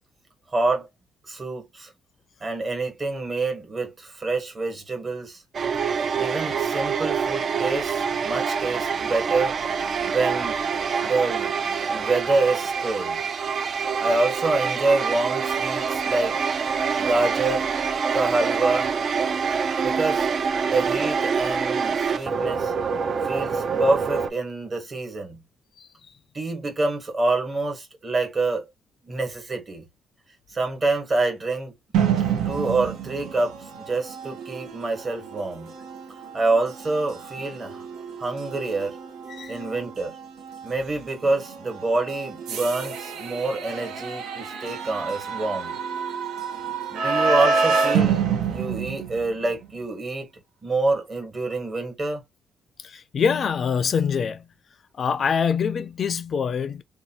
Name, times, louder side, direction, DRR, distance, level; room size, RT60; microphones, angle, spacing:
voice 1, 0.5-0.9 1.3-1.9 2.4-5.4 6.1-9.6 10.1-10.6 11.0-11.5 11.9-13.2 14.0-16.4 17.0-17.7 18.1-18.9 19.8-20.3 20.6-22.7 23.2-25.4 26.3-28.7 29.0-29.8 30.5-31.7 32.4-35.7 36.3-37.9 38.2-39.0 39.5-40.2 40.6-45.7 46.9-50.3 50.6-52.2, right 3 dB, 35° right, 1.3 m, -26 dB
sound 1, 5.5-24.3, right 6 dB, 50° right, 0.4 m, -26 dB
sound 2, 31.9-49.7, right 6 dB, 90° right, 0.7 m, -28 dB
voice 2, 52.8-54.4 55.0-56.8, left 6 dB, 50° left, 0.3 m, -24 dB
2.7 x 2.2 x 2.8 m
cardioid pair, 90°, 0 cm